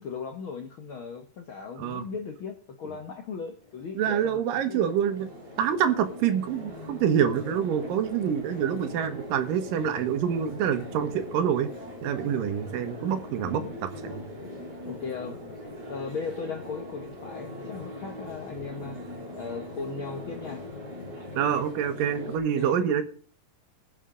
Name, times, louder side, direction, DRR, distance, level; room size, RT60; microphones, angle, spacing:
voice 1, 0.0-4.8 12.3-12.5 13.4-13.7 14.8-15.4 15.9-19.0 19.3-20.7 22.6-22.8, left 5 dB, 65° left, 1.3 m, -37 dB
sound 1, 3.6-22.4, left 1 dB, 30° right, 6.3 m, -41 dB
voice 2, 3.9-5.3 5.6-11.7 12.0-14.2 21.4-23.0, right 8 dB, 80° right, 2.8 m, -26 dB
20.5 x 7.3 x 3.7 m
omnidirectional pair, 3.8 m